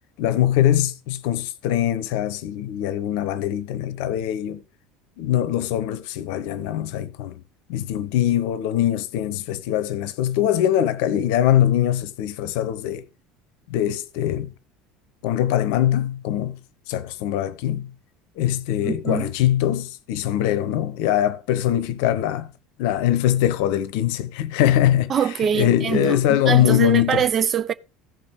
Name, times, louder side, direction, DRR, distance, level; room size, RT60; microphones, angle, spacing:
voice 1, 0.2-4.6 5.2-7.4 7.7-13.0 13.7-14.5 15.2-16.6 16.9-17.9 18.4-22.5 22.8-25.1 25.5-27.2, left 11 dB, 65° left, 0.8 m, -22 dB
voice 2, 18.8-19.3 25.1-27.7, right 8 dB, 35° right, 0.6 m, -24 dB
14.5 x 5.3 x 4.5 m
figure-of-eight pair, 70°, 0 cm